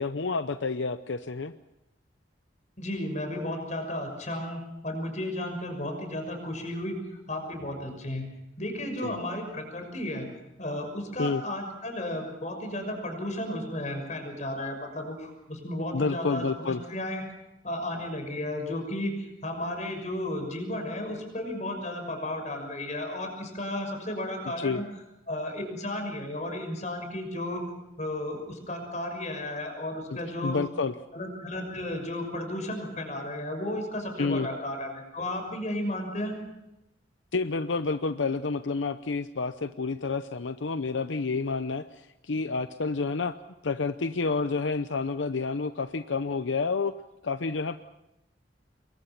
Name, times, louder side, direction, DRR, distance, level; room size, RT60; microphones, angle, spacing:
voice 1, 0.0-1.5 9.0-9.2 11.2-11.4 15.9-16.8 24.6-24.8 30.4-30.9 34.2-34.5 37.3-41.8 42.2-43.3 43.6-46.9 47.2-47.8, left 4 dB, 80° left, 11 dB, 0.7 m, -29 dB
voice 2, 2.8-7.0 7.3-8.3 8.6-10.3 10.6-17.2 17.6-19.1 19.4-24.8 25.3-27.6 28.0-30.6 31.1-36.4, left 1 dB, 40° left, 5 dB, 6.2 m, -33 dB
27.5 x 22.5 x 5.9 m, 0.90 s
head